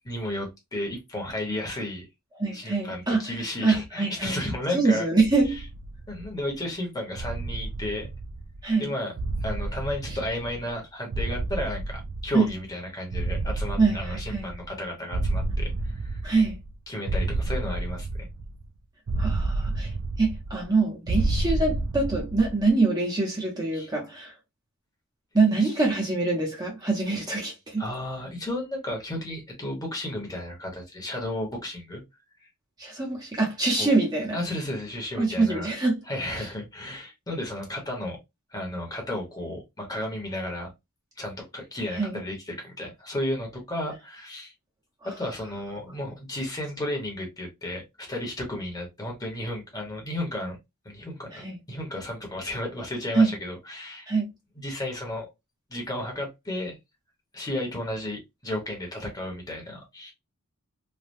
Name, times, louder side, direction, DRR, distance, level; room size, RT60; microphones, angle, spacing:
voice 1, 0.0-2.1 2.5-5.0 6.1-8.1 8.8-9.1 9.4-16.2 16.9-18.3 23.7-23.9 25.5-25.7 27.8-32.0 33.8-33.9 34.3-35.7 36.1-38.2 38.5-40.7 41.2-44.5 45.2-50.6 50.8-54.1 54.6-55.3 55.7-56.8 57.3-60.1, left 1 dB, 15° left, 1.0 m, -33 dB
voice 2, 2.4-3.3 3.6-5.6 8.6-8.9 12.3-12.5 13.8-14.5 16.2-16.6 19.2-19.9 20.2-24.3 25.3-27.8 32.8-34.4 35.2-36.0 36.3-36.5 41.9-42.2 51.3-51.6 53.1-53.3 54.1-54.3, right 3 dB, 20° right, 0.8 m, -24 dB
sound 1, 5.2-6.5 7.2-8.7 9.2-10.8 11.1-12.7 13.1-14.8 15.1-16.7 17.1-18.7 19.1-20.7 21.1-22.7, right 2 dB, 55° right, 0.4 m, -30 dB
3.2 x 2.2 x 2.6 m
head